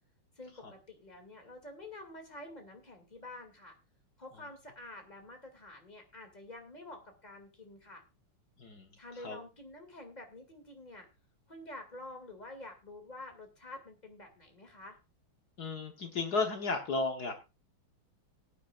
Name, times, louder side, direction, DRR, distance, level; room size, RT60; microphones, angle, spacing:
voice 1, 0.4-3.8 4.2-8.0 9.0-11.1 11.5-15.0, left 2 dB, 20° left, 4 dB, 2.5 m, -48 dB
voice 2, 8.6-8.9 9.2-9.4 15.6-17.3, left 3 dB, 55° left, 5 dB, 1.6 m, -33 dB
19.5 x 9.4 x 2.5 m, 0.27 s
omnidirectional pair, 2.3 m